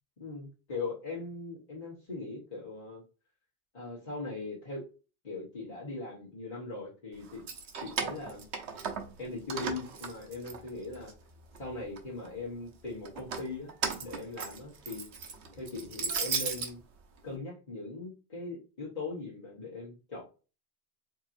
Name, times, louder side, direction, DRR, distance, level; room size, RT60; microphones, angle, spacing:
voice 1, 0.2-3.0 3.7-4.8 5.2-7.5 7.8-8.4 9.2-11.1 11.6-13.7 14.0-15.0 15.5-16.8 17.2-20.2, left 3 dB, 40° left, -7 dB, 1.6 m, -40 dB
Keys jangling, 7.3-9.2 9.5-11.1 11.5-12.3 13.0-16.7, right 6 dB, 75° right, 1.0 m, -36 dB
4.5 x 3.0 x 2.6 m, 0.33 s
omnidirectional pair, 1.1 m